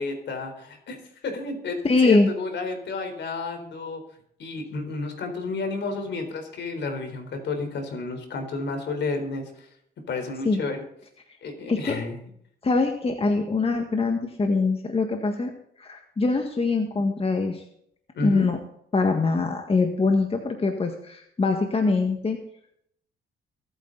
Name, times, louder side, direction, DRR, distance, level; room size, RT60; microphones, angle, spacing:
voice 1, 0.0-4.0 4.4-9.7 10.1-10.8 11.4-12.2 18.1-18.5, left 3 dB, 65° left, 5 dB, 4.1 m, -31 dB
voice 2, 1.8-2.3 10.5-10.6 11.7-12.0 12.6-15.5 15.8-17.6 18.2-18.6 18.9-22.4, left 3 dB, 30° left, 4 dB, 1.7 m, -23 dB
23.0 x 8.9 x 4.0 m, 0.70 s
cardioid pair, 90°, 20 cm